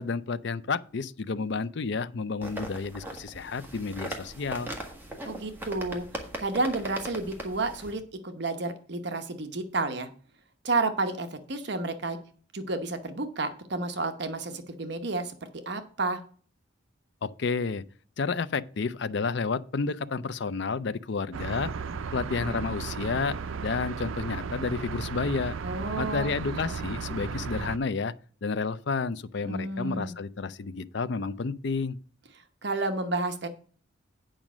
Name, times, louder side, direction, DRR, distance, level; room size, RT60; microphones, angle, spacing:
voice 1, 0.0-4.7 17.2-17.8 18.2-21.7 22.1-25.5 26.0-28.1 28.4-32.0, left 4 dB, 60° left, 0.5 m, -31 dB
sound 1, 2.4-7.9, right 1 dB, 10° right, 1.5 m, -39 dB
voice 2, 5.2-6.1 6.4-10.1 10.6-12.2 12.5-16.2 25.6-26.4 29.4-30.1 32.6-33.5, right 3 dB, 55° right, 0.9 m, -31 dB
sound 2, 21.3-27.8, right 5 dB, 80° right, 0.5 m, -35 dB
9.0 x 5.1 x 6.1 m
head